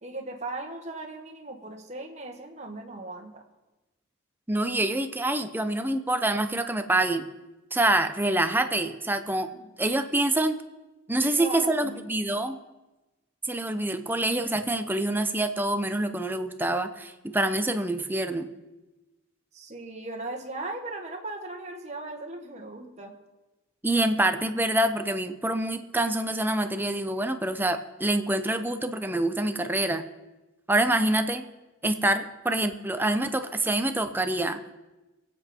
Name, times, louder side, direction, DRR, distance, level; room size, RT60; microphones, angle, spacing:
voice 1, 0.0-3.4 9.6-9.7 11.1-12.1 19.5-23.1, right 2 dB, 35° right, 2 dB, 1.6 m, -38 dB
voice 2, 4.5-7.2 7.7-9.5 9.8-10.6 11.1-12.6 13.4-18.5 23.8-30.0 30.7-31.4 31.8-34.6, right 1 dB, 10° right, 8 dB, 0.7 m, -26 dB
24.0 x 8.2 x 4.4 m, 1.1 s
head